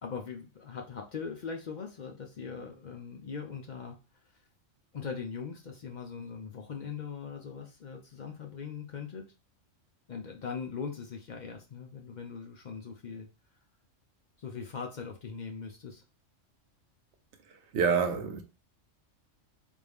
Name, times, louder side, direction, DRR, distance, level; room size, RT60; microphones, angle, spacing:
voice 1, 0.0-4.0 4.9-9.3 10.1-13.3 14.4-16.0, left 6 dB, 60° left, 0.5 m, -40 dB
voice 2, 17.7-18.4, right 6 dB, 65° right, 0.9 m, -27 dB
3.4 x 2.6 x 3.4 m
omnidirectional pair, 1.3 m